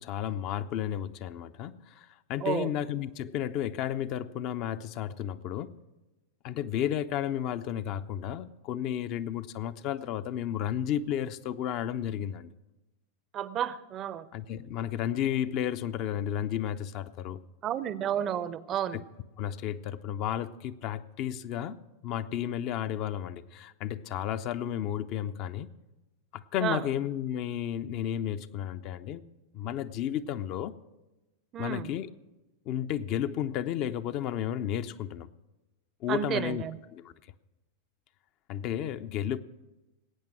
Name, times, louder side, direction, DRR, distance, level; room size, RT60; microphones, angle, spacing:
voice 1, 0.0-5.8 6.4-12.5 14.3-17.4 18.9-19.0 19.4-25.7 26.3-29.2 29.5-30.7 31.6-32.1 32.7-35.3 36.0-36.6 36.9-37.1 38.5-39.4, left 10 dB, 40° left, 11 dB, 0.5 m, -32 dB
voice 2, 2.4-2.7 13.3-14.3 17.6-19.0 26.6-26.8 31.5-31.9 36.1-36.8, right 10 dB, 30° right, 18 dB, 0.5 m, -31 dB
19.5 x 8.8 x 6.1 m, 1.0 s
figure-of-eight pair, 90°, 0 cm